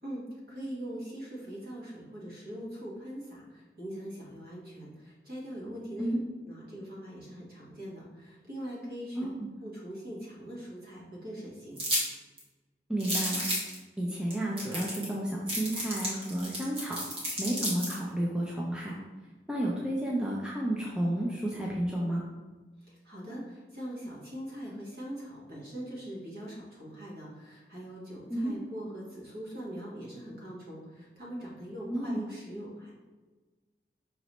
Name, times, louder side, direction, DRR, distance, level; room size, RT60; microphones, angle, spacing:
voice 1, 0.5-6.1 6.4-9.2 9.6-11.8 22.8-32.9, equal, 55° right, -5 dB, 1.4 m, -42 dB
voice 2, 9.1-9.5 12.9-13.4 14.0-17.0 17.4-19.0 19.5-22.2 28.3-28.5 31.9-32.2, right 1 dB, 5° right, -4 dB, 0.4 m, -31 dB
sound 1, 11.8-12.1 12.4-12.5 13.0-13.7 14.3-14.4 14.6-15.1 15.5-18.0, equal, 30° right, 1.1 m, -32 dB
5.2 x 3.0 x 3.0 m, 1.3 s
head